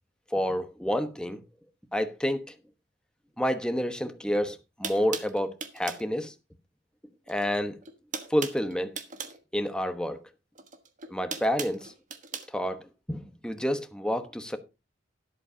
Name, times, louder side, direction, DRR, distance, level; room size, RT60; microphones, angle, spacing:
voice 1, 0.3-1.4 1.9-2.5 3.4-6.3 7.3-7.8 8.3-8.9 9.5-10.2 11.1-11.9 12.5-14.6, equal, 5° left, 1.1 m, -29 dB
sound 1, 4.3-4.4 4.8-6.1 7.3-7.6 7.8-9.4 10.6-12.5, right 5 dB, 40° right, 1.3 m, -38 dB
12.5 x 11.5 x 2.8 m
head